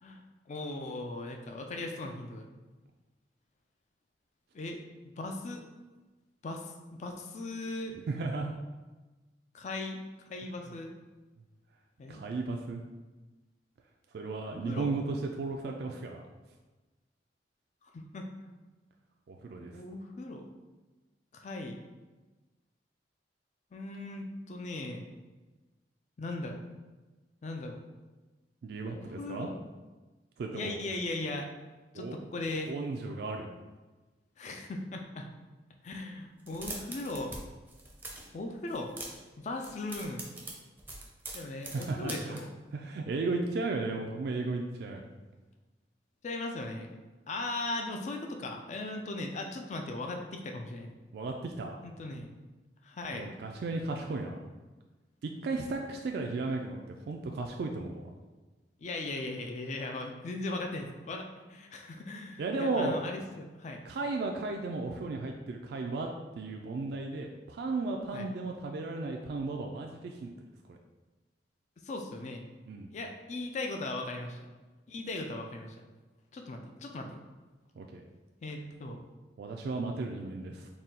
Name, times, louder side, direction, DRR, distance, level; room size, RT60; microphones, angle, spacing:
voice 1, 0.5-2.5 4.5-4.8 5.2-5.6 6.4-7.9 9.5-10.0 10.3-10.9 12.0-12.2 14.5-14.9 17.9-18.3 19.6-20.4 21.3-21.8 23.7-25.1 26.2-26.6 27.4-27.8 28.9-29.5 30.5-31.5 31.9-32.7 34.4-35.3 35.8-37.3 38.3-38.9 39.4-40.3 41.3-42.5 46.2-46.9 47.3-50.9 51.8-52.3 52.8-53.3 58.8-61.2 61.5-63.8 68.1-68.3 71.9-72.5 72.9-74.4 74.9-75.7 76.3-77.2 78.4-79.0 80.2-80.3, left 2 dB, 40° left, 3 dB, 0.4 m, -38 dB
voice 2, 7.9-8.5 10.7-10.8 12.1-12.8 14.1-16.2 19.3-19.8 28.6-29.5 30.4-30.8 31.9-32.1 32.7-33.5 41.7-42.4 42.7-45.0 51.1-51.8 53.1-54.4 55.2-58.0 62.4-63.0 63.8-66.1 66.3-70.3 70.7-70.8 72.7-72.9 77.8-78.0 79.4-80.7, right 3 dB, 60° right, 2 dB, 0.3 m, -35 dB
sound 1, 36.4-37.4 37.7-38.3 38.7-39.3 39.6-42.4, right 2 dB, 10° right, 0.5 m, -42 dB
4.1 x 2.2 x 3.7 m, 1.2 s
head